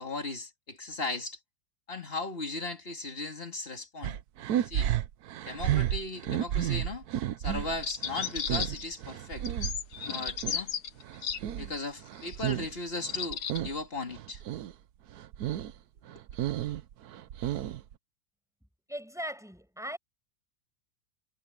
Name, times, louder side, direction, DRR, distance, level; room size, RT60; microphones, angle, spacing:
voice 1, 0.0-1.4 1.9-4.2 4.7-4.9 5.4-7.0 7.4-9.4 10.1-10.7 11.6-14.4, left 2 dB, 40° left, 2.7 m, -37 dB
sound 1, 4.0-10.6 11.0-12.8 13.0-13.8 14.1-14.7 15.1-15.7 16.1-17.9, right 11 dB, 80° right, 1.3 m, -32 dB
sound 2, 7.8-8.9 9.4-11.4 12.2-12.5 13.0-13.6, left 8 dB, 85° left, 1.8 m, -34 dB
voice 2, 18.9-20.0, equal, ahead, 6.9 m, -38 dB
omnidirectional pair, 1.6 m